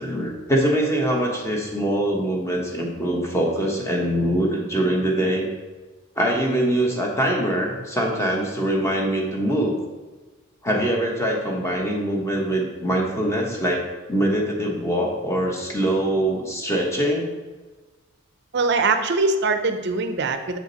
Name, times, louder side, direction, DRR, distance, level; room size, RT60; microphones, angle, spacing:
voice 1, 0.0-5.5 6.2-9.8 10.6-13.8 14.1-17.3, right 1 dB, 15° left, -1 dB, 1.0 m, -23 dB
voice 2, 18.5-20.6, right 3 dB, 50° right, 8 dB, 0.6 m, -22 dB
7.5 x 5.0 x 4.0 m, 1.3 s
head